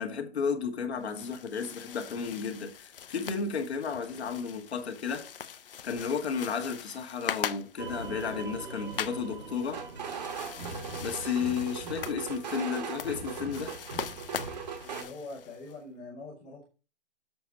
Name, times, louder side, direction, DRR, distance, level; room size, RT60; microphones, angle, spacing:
voice 1, 0.0-5.3 5.8-9.8 11.0-13.7, left 6 dB, 70° left, 1.5 m, -33 dB
sound 1, 0.9-15.8, left 8 dB, 55° left, 0.6 m, -42 dB
sound 2, 7.8-12.2, right 4 dB, 65° right, 2.3 m, -43 dB
sound 3, 9.7-15.0, right 5 dB, 40° right, 1.2 m, -38 dB
voice 2, 14.8-16.6, left 2 dB, 5° left, 0.6 m, -44 dB
7.0 x 4.2 x 6.0 m
hypercardioid pair, 165°, 34 cm